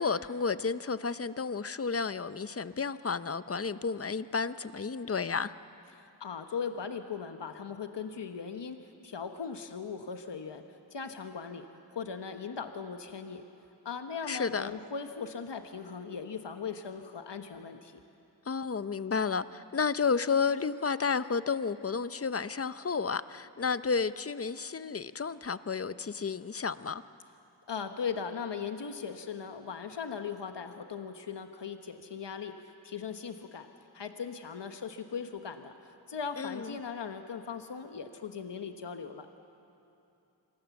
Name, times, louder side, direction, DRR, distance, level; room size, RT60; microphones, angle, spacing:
voice 1, 0.0-5.5 14.3-14.7 18.5-27.0 36.4-36.8, left 5 dB, 35° left, 14 dB, 0.7 m, -31 dB
voice 2, 5.9-10.6 10.9-11.7 11.9-13.4 13.8-18.0 27.7-33.7 33.9-39.3, left 6 dB, 80° left, 7 dB, 1.2 m, -39 dB
27.5 x 24.0 x 7.1 m, 2.9 s
wide cardioid pair, 70°, 42 cm